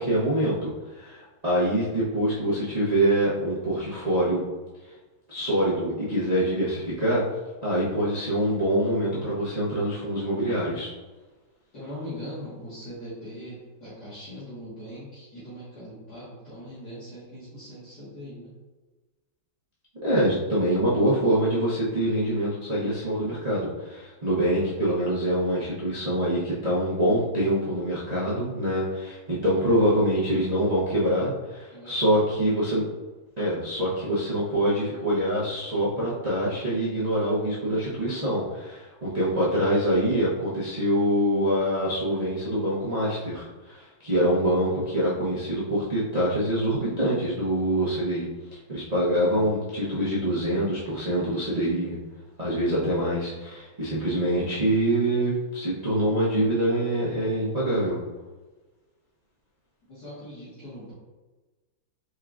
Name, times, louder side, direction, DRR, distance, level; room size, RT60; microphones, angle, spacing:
voice 1, 0.0-4.4 5.3-7.2 7.6-10.9 20.0-32.8 33.4-52.0 52.4-58.0, right 1 dB, 35° right, -10 dB, 0.6 m, -25 dB
voice 2, 11.7-18.6 31.7-32.4 59.9-60.9, equal, 55° left, -12 dB, 2.1 m, -41 dB
4.7 x 4.4 x 2.4 m, 1.2 s
omnidirectional pair, 2.2 m